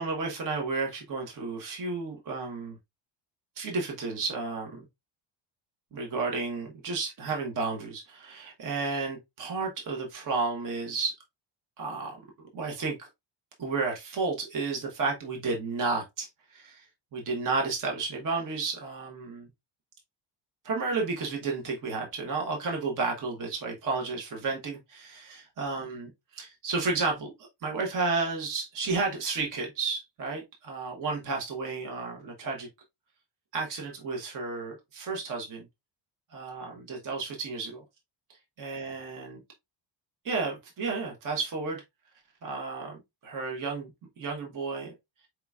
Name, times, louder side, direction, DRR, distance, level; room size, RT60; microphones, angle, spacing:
voice 1, 0.0-2.7 3.6-4.8 5.9-11.1 11.8-13.1 13.6-16.9 17.1-19.5 20.6-27.3 27.6-32.7 33.5-35.7 36.3-37.8 38.6-39.4 40.2-41.8 42.4-43.9 44.2-44.9, right 4 dB, 40° right, 1.2 m, -32 dB
4.6 x 3.8 x 2.3 m
cardioid pair, 165°, 47 cm